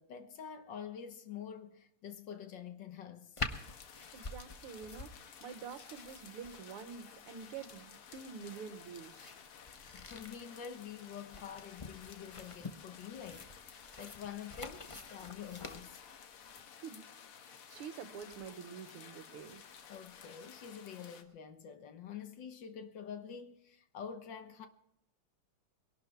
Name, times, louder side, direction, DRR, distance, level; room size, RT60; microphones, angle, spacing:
voice 1, 0.0-3.4 9.9-16.0 19.9-24.7, left 7 dB, 60° left, 1.7 m, -47 dB
sound 1, 3.4-16.6, left 3 dB, 45° left, 0.4 m, -47 dB
sound 2, 3.5-21.2, left 7 dB, 80° left, 2.2 m, -54 dB
voice 2, 4.1-9.3 16.8-17.0 17.4-19.6, right 6 dB, 80° right, 2.0 m, -47 dB
22.0 x 11.5 x 4.5 m
omnidirectional pair, 2.4 m